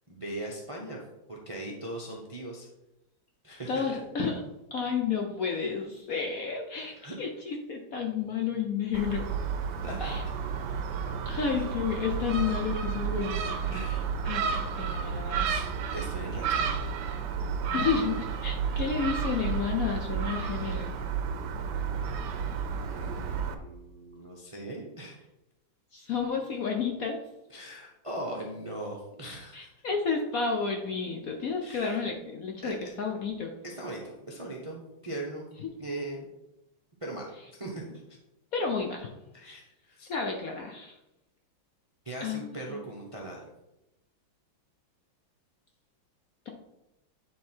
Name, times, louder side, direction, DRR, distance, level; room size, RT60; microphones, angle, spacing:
voice 1, 0.1-1.0 1.3-2.7 3.4-4.0 7.0-7.1 9.7-10.2 11.5-11.6 13.7-14.1 15.5-15.7 15.9-16.7 22.9-25.3 27.5-29.7 31.6-32.0 32.6-32.7 33.6-35.5 35.8-36.3 37.0-37.9 39.3-40.1 42.0-43.5, right 1 dB, 30° right, -1 dB, 0.6 m, -39 dB
voice 2, 3.7-4.4 4.7-9.3 10.0-10.2 11.3-13.4 14.3-14.4 14.8-15.5 17.7-20.9 25.9-27.2 29.5-33.5 35.6-35.7 38.5-39.1 40.1-41.0 42.2-42.9, left 6 dB, 60° left, 2 dB, 1.0 m, -31 dB
Gull seagull, 8.9-23.5, right 6 dB, 70° right, 1.2 m, -31 dB
9.3 x 3.8 x 4.4 m, 0.91 s
omnidirectional pair, 2.1 m